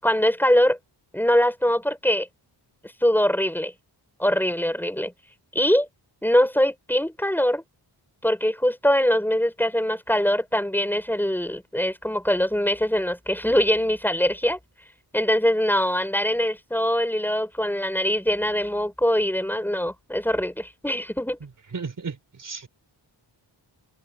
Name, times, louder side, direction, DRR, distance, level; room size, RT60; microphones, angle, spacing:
voice 1, 0.0-0.8 1.1-2.3 3.0-3.7 4.2-5.1 5.5-5.9 6.2-7.6 8.2-14.6 15.1-21.4, equal, 5° left, 6.6 m, -22 dB
voice 2, 21.7-22.7, right 5 dB, 45° right, 3.9 m, -34 dB
open air
wide cardioid pair, 165°, 43 cm